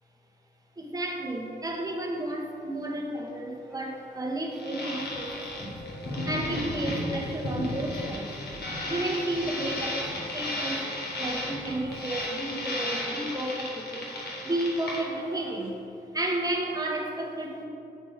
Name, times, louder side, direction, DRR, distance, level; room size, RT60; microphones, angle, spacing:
voice 1, 0.8-5.8 6.2-8.3 8.8-10.9 11.2-14.2 14.4-15.8 16.1-17.7, right 1 dB, 20° right, 0 dB, 1.2 m, -32 dB
sound 1, 3.2-15.9, equal, 5° left, 0.9 m, -46 dB
sound 2, 4.5-15.0, left 1 dB, 65° left, 1.5 m, -35 dB
sound 3, 5.0-12.5, equal, 80° left, 1.7 m, -37 dB
8.6 x 4.0 x 5.0 m, 2.7 s
cardioid pair, 75°, 18 cm